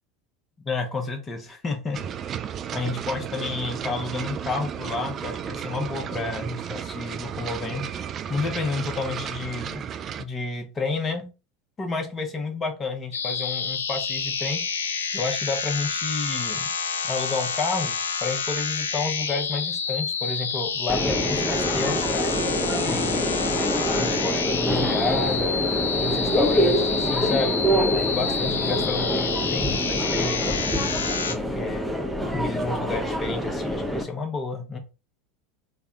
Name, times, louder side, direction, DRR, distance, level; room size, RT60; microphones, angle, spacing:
voice 1, 0.6-2.3 2.7-7.9 8.3-9.9 10.2-11.3 11.8-16.7 17.0-18.0 18.2-22.3 22.8-23.6 24.0-25.6 26.0-30.9 31.3-31.9 32.3-34.8, left 3 dB, 25° left, 5 dB, 0.9 m, -30 dB
sound 1, 1.9-10.2, right 8 dB, 35° right, 0.3 m, -33 dB
sound 2, 13.1-31.4, left 5 dB, 75° left, 0.4 m, -28 dB
Subway metro underground, 20.9-34.0, equal, 5° right, 0.7 m, -25 dB
3.3 x 2.2 x 3.6 m, 0.30 s
figure-of-eight pair, 80°, 0 cm